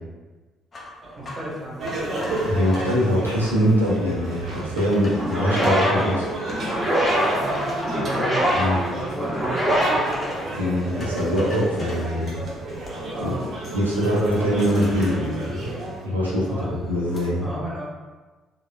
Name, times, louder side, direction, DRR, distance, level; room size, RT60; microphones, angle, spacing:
sound 1, 0.7-3.6 4.2-4.3 4.8-5.9 6.5-8.2 9.4-10.6 11.0-12.1 12.6-13.2 13.6-13.8 14.1-16.0 16.3-17.3, left 1 dB, 35° left, 0.6 m, -39 dB
voice 1, 1.0-1.9 7.3-8.6 8.9-10.1 13.1-13.5 16.3-16.7 17.4-17.8, right 1 dB, 15° right, -6 dB, 1.1 m, -34 dB
sound 2, 1.8-16.1, right 1 dB, 45° right, 0.7 m, -31 dB
voice 2, 2.4-6.3 8.5-8.8 10.5-12.4 13.2-13.3 13.7-15.7 16.0-17.5, equal, 90° right, -6 dB, 0.5 m, -23 dB
sound 3, 5.1-10.9, equal, 5° left, 0.9 m, -24 dB
3.5 x 2.1 x 2.2 m, 1.3 s
figure-of-eight pair, 50°, 0 cm